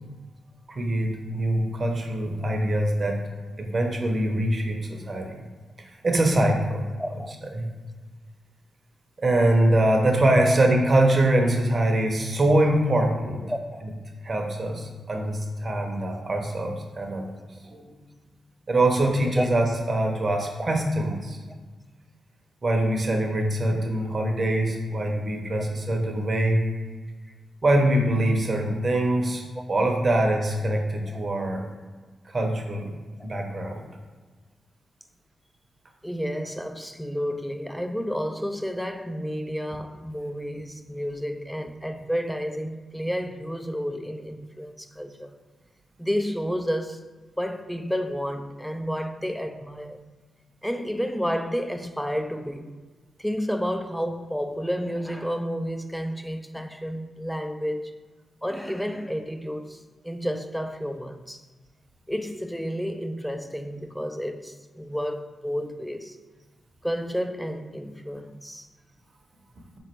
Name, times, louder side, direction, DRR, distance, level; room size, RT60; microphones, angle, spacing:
voice 1, 0.7-3.2 3.6-5.4 5.8-6.9 7.5-7.7 9.2-13.4 14.2-17.2 17.6-17.8 18.7-21.4 22.6-26.7 27.6-29.4 29.7-31.6 32.3-32.9 33.2-33.8, right 1 dB, 40° right, 0.8 m, -23 dB
voice 2, 7.0-7.3 10.3-10.6 13.4-13.9 15.1-15.3 19.2-19.5 20.4-20.5 29.5-29.6 31.1-31.3 33.2-33.3 36.0-45.3 46.0-47.0 47.4-50.0 50.6-52.8 53.2-58.0 58.4-61.4 62.1-66.2 66.8-68.7, equal, ahead, 0.3 m, -31 dB
3.9 x 3.1 x 4.4 m
cardioid pair, 90°, 0 cm